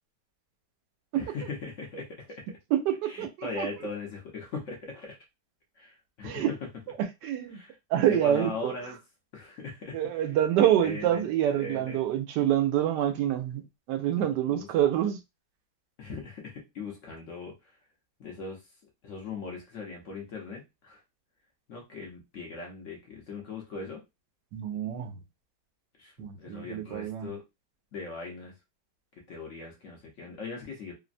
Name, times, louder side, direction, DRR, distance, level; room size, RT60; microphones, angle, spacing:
voice 1, 1.1-2.6 3.1-5.2 5.8-6.4 7.5-9.0 9.3-10.2 10.8-11.2 11.6-12.0 14.5-14.7 16.0-17.8 18.2-18.6 19.0-21.0 21.7-24.0 26.0-27.4 27.9-28.5 29.2-30.9, left 3 dB, 60° left, 0.9 m, -39 dB
voice 2, 2.7-3.7 6.2-6.5 7.0-7.6 7.9-8.7 9.9-15.2 24.5-25.2 26.2-27.3, right 11 dB, 85° right, 1.2 m, -27 dB
3.2 x 2.1 x 2.4 m
omnidirectional pair, 1.8 m